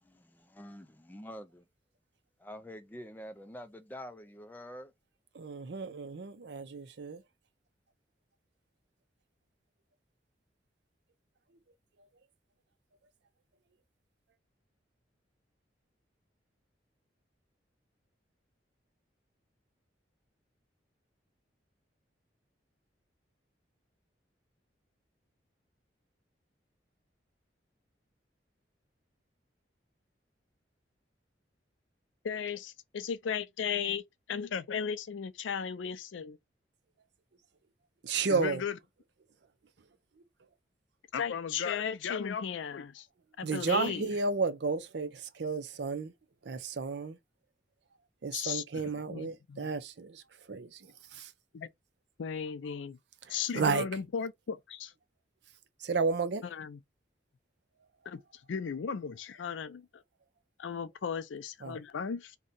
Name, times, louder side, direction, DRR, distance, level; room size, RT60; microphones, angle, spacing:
voice 1, 0.0-1.6 2.4-4.9, equal, 10° left, 0.4 m, -46 dB
voice 2, 5.3-7.2 38.0-38.6 43.4-46.1 46.4-47.2 48.2-50.2 50.5-51.3 53.3-53.9 55.8-56.4 61.6-61.8, right 4 dB, 65° right, 0.5 m, -32 dB
voice 3, 32.2-34.0 34.3-36.4 38.3-38.8 41.1-43.1 43.4-44.1 48.3-48.6 49.1-49.7 51.5-51.7 52.2-53.0 53.3-54.9 56.4-56.8 58.1-58.2 58.5-60.0 60.6-62.4, left 7 dB, 90° left, 0.4 m, -35 dB
2.7 x 2.2 x 3.8 m
head